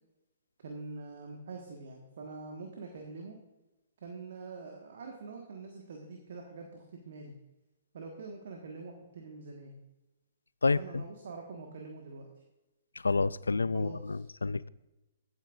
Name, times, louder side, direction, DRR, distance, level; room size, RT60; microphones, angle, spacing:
voice 1, 0.6-3.4 4.0-7.3 7.9-9.7 10.7-12.4 13.7-14.3, right 4 dB, 60° right, 2 dB, 1.5 m, -45 dB
voice 2, 10.6-11.0 13.0-14.7, left 3 dB, 80° left, 19 dB, 0.3 m, -29 dB
15.5 x 9.1 x 2.5 m, 1.0 s
figure-of-eight pair, 120°, 0 cm